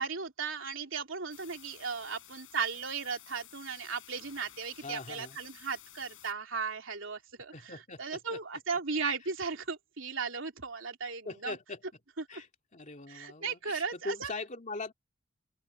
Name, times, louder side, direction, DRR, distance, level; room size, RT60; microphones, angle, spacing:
voice 1, 0.0-11.5 12.3-12.4 13.1-14.3, right 5 dB, 70° right, 3.5 m, -36 dB
sound 1, 1.3-6.3, left 12 dB, 70° left, 6.4 m, -54 dB
voice 2, 4.8-5.4 7.5-8.4 11.2-11.8 12.3-12.5 12.7-14.9, left 3 dB, 40° left, 2.6 m, -41 dB
open air
head